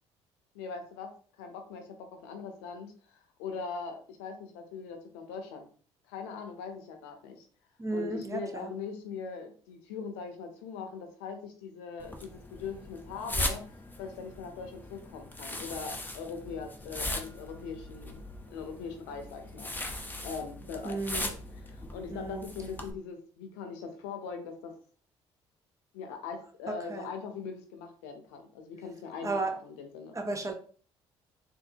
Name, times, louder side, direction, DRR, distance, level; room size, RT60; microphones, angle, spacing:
voice 1, 0.5-1.1 1.4-5.7 6.1-7.5 7.9-18.2 18.5-19.7 20.2-21.3 21.6-24.7 25.9-30.2, left 5 dB, 80° left, 5 dB, 0.7 m, -41 dB
voice 2, 7.8-8.7 20.8-21.3 22.1-22.5 26.7-27.1 29.2-29.5 30.1-30.5, right 2 dB, 25° right, 4 dB, 0.9 m, -34 dB
sound 1, 12.0-22.9, left 1 dB, 15° left, 0.7 m, -39 dB
3.8 x 2.6 x 2.7 m, 0.43 s
hypercardioid pair, 60°, 14 cm